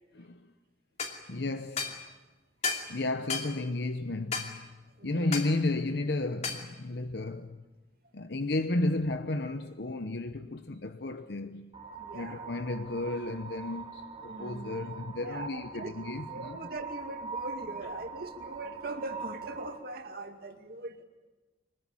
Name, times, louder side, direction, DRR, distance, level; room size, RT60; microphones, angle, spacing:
voice 1, 0.1-0.5 1.3-2.0 2.9-4.7 5.0-7.6 8.1-11.7 12.1-16.6, left 2 dB, 60° left, 0.9 m, -33 dB
sound 1, 1.0-1.2 1.8-2.0 2.6-2.9 3.3-3.5 4.3-4.5 5.3-5.5 6.4-6.6, left 5 dB, 40° left, 2.7 m, -32 dB
voice 2, 5.0-5.3 12.0-12.5 14.3-15.0 15.2-16.0 16.3-21.0, right 2 dB, 55° right, 2.3 m, -41 dB
sound 2, 11.7-19.8, right 5 dB, 30° right, 2.3 m, -43 dB
24.5 x 20.5 x 8.7 m
head